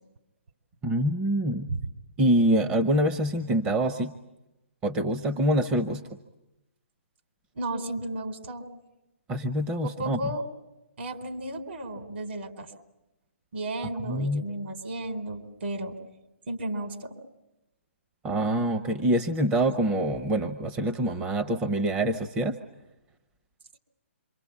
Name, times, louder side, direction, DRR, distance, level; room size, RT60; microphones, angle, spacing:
voice 1, 0.8-1.7 2.2-4.1 4.8-6.0 9.3-10.2 14.1-14.4 18.2-22.6, right 1 dB, 15° right, 7 dB, 0.9 m, -25 dB
voice 2, 7.5-8.7 9.8-10.4 11.0-12.7 13.5-16.0 16.5-17.1, right 1 dB, 60° right, 6 dB, 4.1 m, -34 dB
27.5 x 25.0 x 8.6 m, 0.96 s
hypercardioid pair, 150°, 7 cm